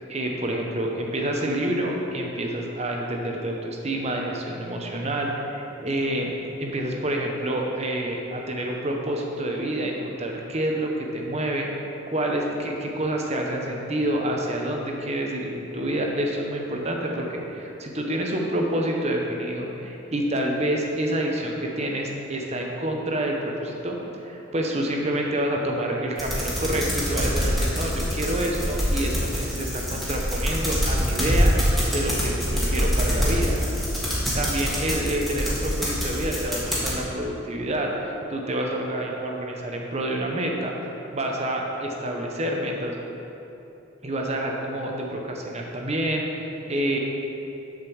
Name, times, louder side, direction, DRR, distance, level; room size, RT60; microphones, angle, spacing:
voice 1, 0.1-31.5 31.9-33.6 34.1-43.0 44.0-47.0, right 1 dB, 30° right, 0 dB, 0.8 m, -28 dB
sound 1, 26.2-36.9, equal, ahead, 1.5 m, -25 dB
7.0 x 5.1 x 7.1 m, 3.0 s
head